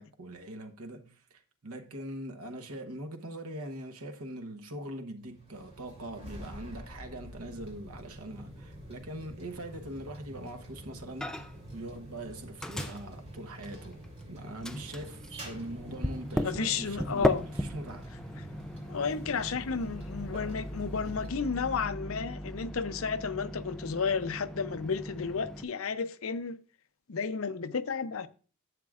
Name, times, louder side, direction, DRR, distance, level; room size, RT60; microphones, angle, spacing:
voice 1, 0.0-14.0 14.3-18.1, right 1 dB, 85° right, 1.0 m, -42 dB
sound 1, 5.2-21.3, equal, 30° right, 2.7 m, -47 dB
Microwave oven, 11.2-11.7 12.0-14.2 14.6-25.6, equal, 5° left, 0.3 m, -37 dB
voice 2, 16.4-17.4 18.9-26.6 27.1-28.3, left 5 dB, 75° left, 0.6 m, -32 dB
11.0 x 7.6 x 2.4 m
head